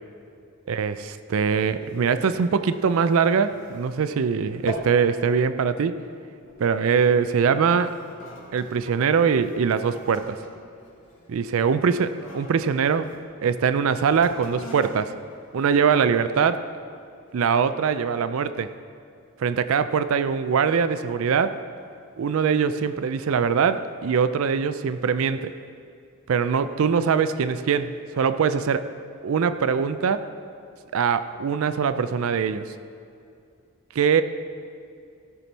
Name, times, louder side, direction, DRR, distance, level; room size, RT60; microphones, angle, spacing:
voice 1, 0.7-6.0 6.6-7.9 8.5-10.4 11.3-12.1 12.3-13.1 13.4-15.1 15.5-16.7 17.3-18.7 19.4-21.6 22.2-25.5 26.3-28.9 29.2-30.3 30.9-32.7 33.9-34.2, right 6 dB, 70° right, 12 dB, 0.4 m, -22 dB
sound 1, 1.6-4.2 4.5-5.0 5.4-5.7 6.4-6.7 7.4-13.2 14.0-16.3 16.9-17.0, equal, 65° left, 2.5 m, -43 dB
16.5 x 6.0 x 4.1 m, 2.5 s
head